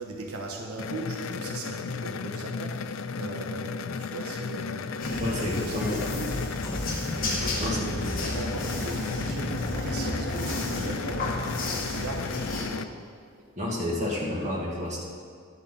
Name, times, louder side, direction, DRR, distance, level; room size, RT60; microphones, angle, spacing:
voice 1, 0.0-6.6 7.6-12.9, right 2 dB, 85° right, 1 dB, 1.1 m, -38 dB
sound 1, 0.8-12.8, left 5 dB, 70° left, 0.4 m, -34 dB
sound 2, 5.0-12.6, left 1 dB, 40° left, 1.9 m, -32 dB
voice 2, 5.2-6.2 7.6-8.3 13.6-15.0, left 1 dB, 35° right, -5 dB, 2.3 m, -30 dB
11.5 x 10.0 x 4.0 m, 2.1 s
head